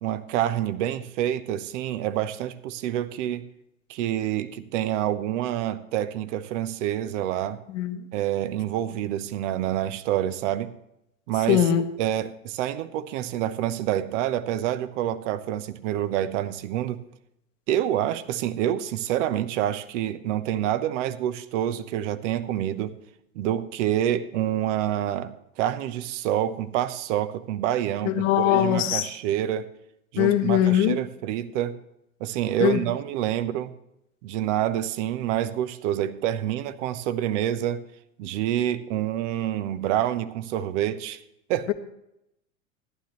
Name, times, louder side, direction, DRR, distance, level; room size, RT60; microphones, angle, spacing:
voice 1, 0.0-3.4 3.9-7.6 8.1-10.7 11.3-11.6 12.0-17.0 17.7-22.9 23.3-29.7 30.1-31.8 32.2-33.7 34.2-37.8 38.2-41.2 41.5-41.7, right 11 dB, 60° right, 13 dB, 1.0 m, -27 dB
voice 2, 7.7-8.0 11.5-11.9 28.0-29.1 30.2-31.0 32.6-32.8 41.7-41.8, left 11 dB, 65° left, 6 dB, 1.4 m, -21 dB
14.5 x 11.5 x 3.1 m, 0.82 s
hypercardioid pair, 90°, 41 cm